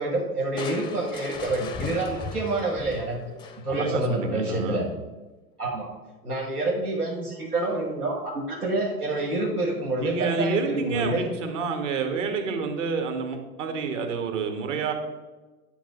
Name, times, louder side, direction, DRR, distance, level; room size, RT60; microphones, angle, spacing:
voice 1, 0.0-3.2 3.6-4.8 5.6-5.9 6.2-11.2, right 2 dB, 85° right, -3 dB, 1.3 m, -27 dB
Crushing, 0.6-3.9, left 5 dB, 10° left, 0.5 m, -37 dB
voice 2, 3.7-4.9 10.0-14.9, right 4 dB, 55° right, 5 dB, 1.5 m, -28 dB
9.2 x 4.1 x 5.0 m, 1.2 s
figure-of-eight pair, 90°, 44 cm